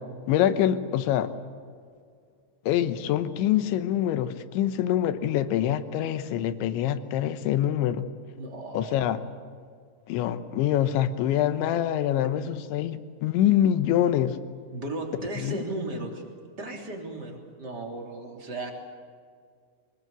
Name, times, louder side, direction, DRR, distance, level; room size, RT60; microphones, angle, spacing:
voice 1, 0.3-1.3 2.7-8.1 8.7-9.2 10.1-14.4 15.4-15.6, left 11 dB, 75° left, 11 dB, 3.2 m, -25 dB
voice 2, 8.4-9.1 14.7-16.2 16.6-18.7, right 2 dB, 25° right, 1 dB, 3.2 m, -35 dB
24.5 x 21.5 x 8.1 m, 2.1 s
omnidirectional pair, 5.6 m